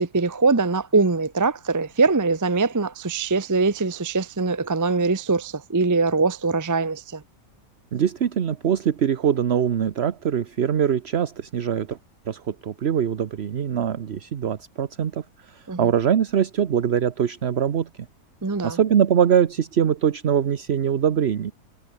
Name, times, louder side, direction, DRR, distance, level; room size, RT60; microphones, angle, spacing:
voice 1, 0.0-7.2 15.7-15.8 18.4-18.8, right 3 dB, 20° right, 0.6 m, -22 dB
voice 2, 7.9-12.0 12.3-17.9 18.6-21.5, right 8 dB, 45° right, 1.0 m, -23 dB
omnidirectional pair, 1.8 m